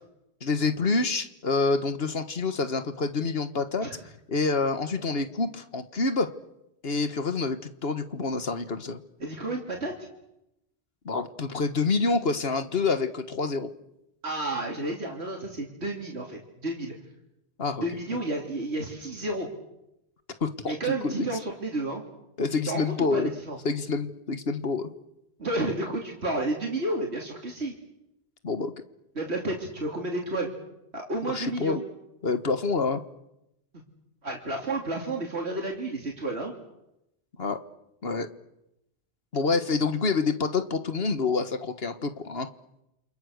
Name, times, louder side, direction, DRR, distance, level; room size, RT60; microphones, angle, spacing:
voice 1, 0.4-3.9 4.3-6.3 6.8-9.0 11.0-13.7 17.6-17.8 20.4-21.3 22.4-23.3 23.6-24.9 28.4-28.7 31.2-31.8 32.2-33.0 37.4-37.6 38.0-38.3 39.3-42.5, left 4 dB, 70° left, 10 dB, 1.7 m, -27 dB
voice 2, 9.2-9.9 14.2-16.9 17.8-19.5 20.7-22.0 22.6-23.6 25.4-27.7 29.1-30.5 30.9-31.8 34.2-36.5, right 2 dB, 90° right, 0 dB, 3.4 m, -31 dB
29.0 x 27.0 x 6.6 m, 0.87 s
omnidirectional pair, 1.1 m